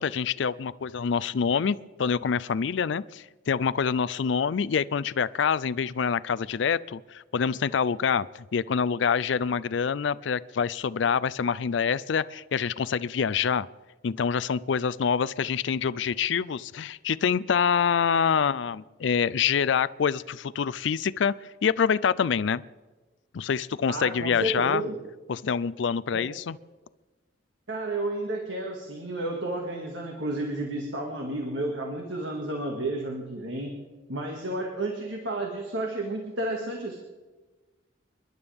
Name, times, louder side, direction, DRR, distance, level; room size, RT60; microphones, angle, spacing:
voice 1, 0.0-13.7 14.0-21.3 21.6-22.6 23.3-24.8 25.3-26.6, left 6 dB, 65° left, 18 dB, 0.4 m, -26 dB
voice 2, 23.9-25.0 26.1-26.2 27.7-33.7 34.1-37.0, right 2 dB, 75° right, 0 dB, 2.1 m, -31 dB
29.0 x 11.5 x 3.6 m, 1.2 s
head